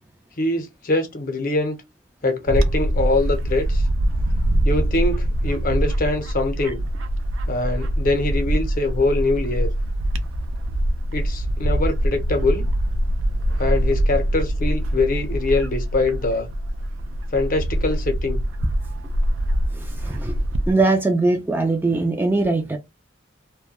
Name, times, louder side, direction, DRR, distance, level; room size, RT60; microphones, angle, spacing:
voice 1, 0.4-1.8 2.2-3.8 4.6-6.8 7.5-9.7 11.1-12.7 13.6-16.5 17.3-18.4, left 2 dB, 45° left, 0.7 m, -23 dB
Bird / Wind, 2.5-20.7, right 1 dB, 85° right, 0.4 m, -23 dB
voice 2, 20.0-20.4 20.7-22.8, right 2 dB, 10° right, 0.3 m, -21 dB
2.2 x 2.2 x 2.8 m
head